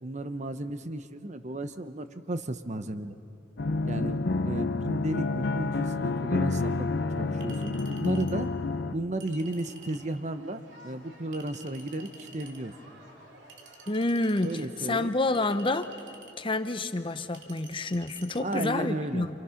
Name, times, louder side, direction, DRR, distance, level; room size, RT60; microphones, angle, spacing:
voice 1, 0.0-3.1 3.8-6.9 7.1-8.5 8.9-12.7 14.4-15.2 18.4-19.3, right 2 dB, 40° right, 10 dB, 0.9 m, -34 dB
sound 1, 3.6-8.9, left 3 dB, 60° left, 0.6 m, -29 dB
Chink clink, 7.4-8.4 9.2-10.1 11.3-12.6 13.5-14.7 15.3-16.4 17.3-18.4, right 2 dB, 80° right, 2.0 m, -50 dB
sound 2, 9.3-14.9, right 1 dB, 65° right, 4.4 m, -54 dB
voice 2, 13.9-14.5 14.9-15.9 16.4-19.3, left 2 dB, 25° left, 10 dB, 0.8 m, -28 dB
28.0 x 28.0 x 5.8 m, 2.8 s
head